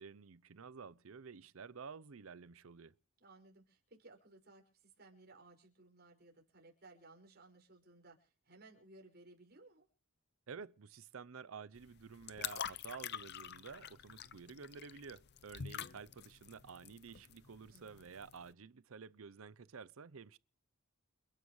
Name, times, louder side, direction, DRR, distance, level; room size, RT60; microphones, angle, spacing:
voice 1, 0.0-2.9 10.5-20.4, right 5 dB, 70° right, 0.6 m, -51 dB
voice 2, 3.2-9.9 17.7-18.1, right 2 dB, 50° right, 5.7 m, -60 dB
sound 1, 11.8-18.5, left 8 dB, 50° left, 0.7 m, -47 dB
29.5 x 10.5 x 3.2 m
head